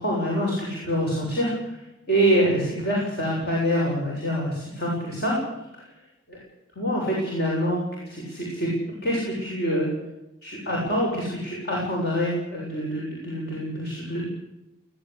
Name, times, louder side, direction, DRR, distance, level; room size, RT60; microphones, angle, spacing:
voice 1, 0.0-1.7 2.1-5.4 5.8-5.9 6.3-6.4 6.8-8.7 9.0-9.9 10.4-14.3, equal, 50° left, -3 dB, 7.7 m, -26 dB
21.5 x 17.5 x 8.5 m, 0.93 s
head